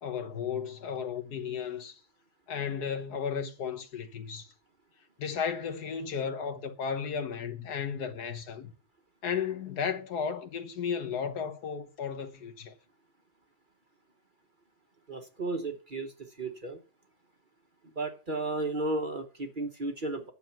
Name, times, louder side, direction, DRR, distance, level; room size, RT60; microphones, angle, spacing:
voice 1, 0.0-2.0 2.5-4.5 5.2-8.7 9.2-12.7, left 7 dB, 75° left, 1.7 m, -34 dB
voice 2, 15.1-16.8 17.9-20.3, right 2 dB, 35° right, 1.1 m, -34 dB
10.5 x 7.2 x 5.9 m
omnidirectional pair, 1.7 m